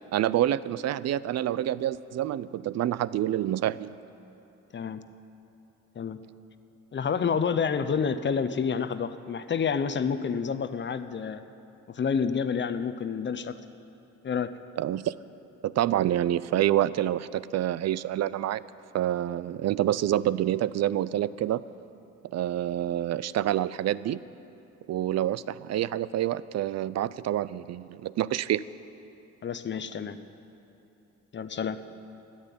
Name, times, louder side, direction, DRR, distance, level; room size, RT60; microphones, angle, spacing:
voice 1, 0.1-3.9 14.8-15.2 15.6-18.6 18.9-21.6 22.2-24.2 24.9-28.6, right 12 dB, 60° right, 18 dB, 0.5 m, -27 dB
voice 2, 4.7-5.0 6.0-6.2 6.9-11.4 11.9-13.6 14.2-14.5 29.4-30.2 31.3-31.8, left 6 dB, 40° left, 11 dB, 0.8 m, -29 dB
13.5 x 8.9 x 10.0 m, 2.9 s
cardioid pair, 90°, 30 cm